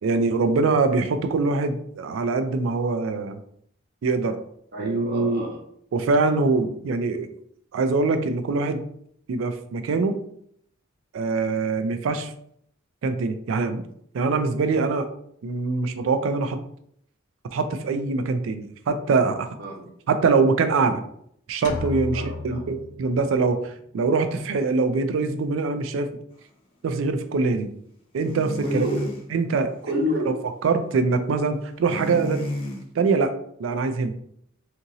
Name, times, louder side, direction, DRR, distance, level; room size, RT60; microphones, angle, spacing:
voice 1, 0.0-3.4 4.0-4.4 4.8-5.5 5.9-7.3 7.7-8.8 9.3-10.2 11.1-12.3 13.0-13.8 14.1-15.1 15.4-16.6 17.5-19.5 20.1-21.0 21.5-26.1 26.8-27.7 28.1-28.8 29.3-29.7 30.3-30.4 30.6-32.4 32.9-33.3 33.6-34.2, right 4 dB, 70° right, 8 dB, 0.3 m, -23 dB
voice 2, 4.7-5.6 19.6-19.9 22.1-22.7 28.6-29.0 29.8-30.3, equal, 50° right, -2 dB, 0.8 m, -28 dB
sound 1, 21.6-23.5, left 3 dB, 90° left, 0.3 m, -34 dB
sound 2, 28.2-29.2 31.9-32.8, left 1 dB, 25° left, 0.5 m, -31 dB
2.8 x 2.5 x 2.6 m, 0.69 s
head